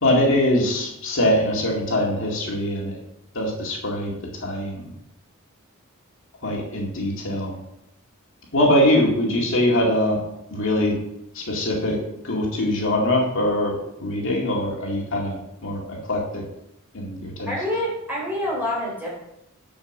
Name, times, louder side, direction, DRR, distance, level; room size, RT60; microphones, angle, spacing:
voice 1, 0.0-2.9 3.3-4.1 4.4-4.9 6.4-7.6 8.5-10.2 10.5-11.0 11.3-15.8 16.1-16.4 16.9-17.5, left 1 dB, 65° left, -2 dB, 2.2 m, -22 dB
voice 2, 17.5-19.2, left 1 dB, 10° right, -5 dB, 4.1 m, -27 dB
7.1 x 6.6 x 7.2 m, 0.83 s
head